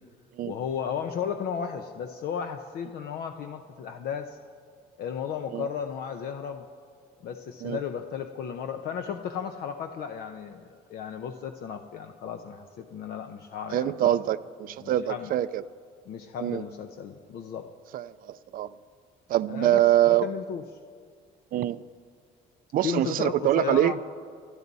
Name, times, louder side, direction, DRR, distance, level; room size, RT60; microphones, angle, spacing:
voice 1, 0.4-4.4 5.0-6.7 7.2-14.2 14.8-15.3 16.1-17.7 19.5-20.6 22.8-24.0, left 7 dB, 65° left, 6 dB, 0.8 m, -34 dB
voice 2, 13.7-15.6 16.4-16.6 17.9-18.7 19.3-20.3 21.5-21.8 22.7-23.9, right 13 dB, 55° right, 16 dB, 0.5 m, -24 dB
28.0 x 10.5 x 4.1 m, 2.1 s
cardioid pair, 110°, 17 cm